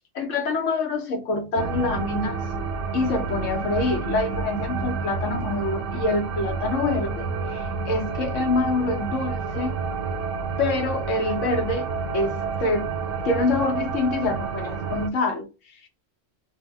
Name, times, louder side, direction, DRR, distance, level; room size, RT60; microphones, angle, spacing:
voice 1, 0.1-2.4 2.9-9.7 10.6-11.9 12.1-12.9 13.2-15.9, left 3 dB, 80° left, 1.2 m, -26 dB
sound 1, 1.6-15.1, right 4 dB, 90° right, 0.9 m, -29 dB
2.6 x 2.1 x 3.1 m
omnidirectional pair, 1.3 m